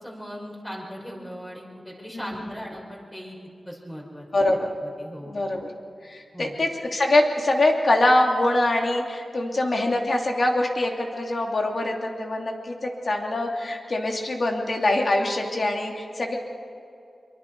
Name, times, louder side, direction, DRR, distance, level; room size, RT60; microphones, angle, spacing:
voice 1, 0.0-3.4 3.7-4.3 4.8-5.4 6.3-6.5, equal, 10° left, -3 dB, 5.6 m, -38 dB
voice 2, 2.1-2.5 4.3-4.7 5.2-5.7 6.0-16.4, left 1 dB, 55° left, 1 dB, 2.7 m, -24 dB
24.5 x 23.0 x 4.7 m, 2.5 s
wide cardioid pair, 90°, 0 cm